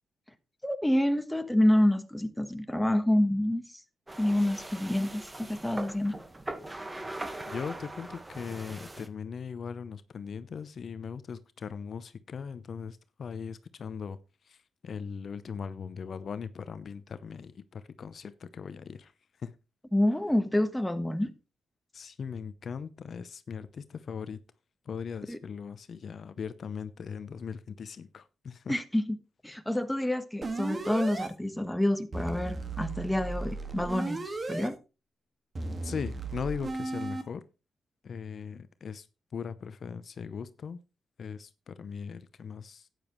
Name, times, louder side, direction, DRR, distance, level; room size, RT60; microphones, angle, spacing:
voice 1, 0.6-3.6 4.2-6.2 19.9-21.3 25.3-25.4 28.7-29.2 29.4-34.8, left 1 dB, 5° left, 1.2 m, -27 dB
sound 1, 4.1-9.1, right 2 dB, 20° right, 1.4 m, -41 dB
voice 2, 7.5-19.1 19.4-19.5 21.9-24.4 24.8-28.8 35.8-37.4 38.0-39.1 39.3-40.8 41.2-42.9, left 6 dB, 60° left, 0.7 m, -39 dB
sound 2, 30.4-31.3 32.1-34.7 35.6-37.2, right 3 dB, 40° right, 1.8 m, -35 dB
12.0 x 9.3 x 3.1 m
cardioid pair, 75°, 0 cm